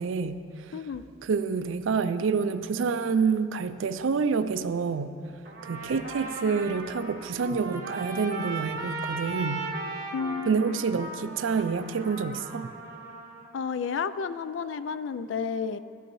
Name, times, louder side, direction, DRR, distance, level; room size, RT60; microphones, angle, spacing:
voice 1, 0.0-0.7 1.2-5.2 5.6-9.7 10.5-12.7, right 5 dB, 75° right, 12 dB, 0.4 m, -28 dB
Trumpet, 5.4-13.5, right 2 dB, 55° right, 1.4 m, -37 dB
voice 2, 10.1-10.7 13.5-15.8, left 6 dB, 70° left, 13 dB, 0.3 m, -31 dB
12.5 x 11.5 x 3.1 m, 2.8 s
head